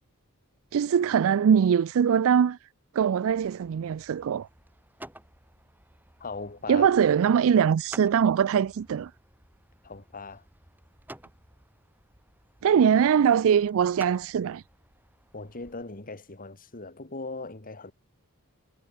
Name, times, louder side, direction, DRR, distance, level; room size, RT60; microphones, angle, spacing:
voice 1, 0.7-2.6 2.9-4.5 6.7-9.1 12.6-14.6, right 7 dB, 65° right, 0.4 m, -22 dB
sound 1, 3.3-15.8, right 1 dB, 10° right, 2.6 m, -51 dB
voice 2, 6.2-6.9 9.8-10.4 15.3-17.9, left 3 dB, 40° left, 2.6 m, -39 dB
head